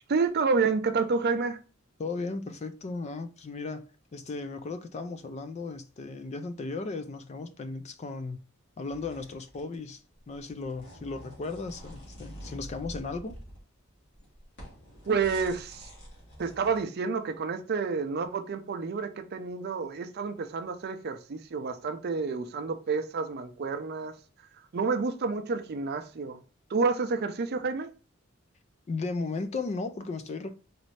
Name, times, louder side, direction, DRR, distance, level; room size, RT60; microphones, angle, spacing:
voice 1, 0.1-1.6 15.1-15.9 16.4-24.2 24.7-26.4 26.7-27.9, right 4 dB, 50° right, 0.5 m, -29 dB
voice 2, 2.0-3.9 4.1-8.4 8.8-13.3 28.9-30.5, left 3 dB, 35° left, 0.3 m, -36 dB
sound 1, 8.9-9.9 10.2-13.6 14.0-16.8, equal, 55° left, 1.8 m, -47 dB
4.1 x 2.6 x 3.2 m
head